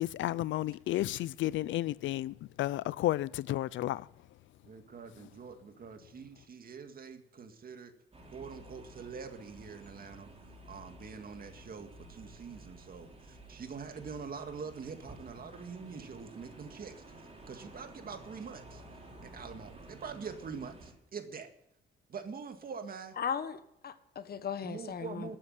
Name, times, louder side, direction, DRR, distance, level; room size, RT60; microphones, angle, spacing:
voice 1, 0.0-4.1, left 15 dB, 75° left, 0.5 m, -32 dB
voice 2, 4.6-7.9 8.3-10.3 10.7-18.8 19.2-21.5 22.1-23.2 24.6-25.4, right 5 dB, 45° right, 2.1 m, -44 dB
sound 1, 8.1-20.9, right 1 dB, 30° right, 4.8 m, -52 dB
voice 3, 23.2-25.3, left 7 dB, 50° left, 1.4 m, -37 dB
13.0 x 8.5 x 9.5 m
cardioid pair, 90°, 20 cm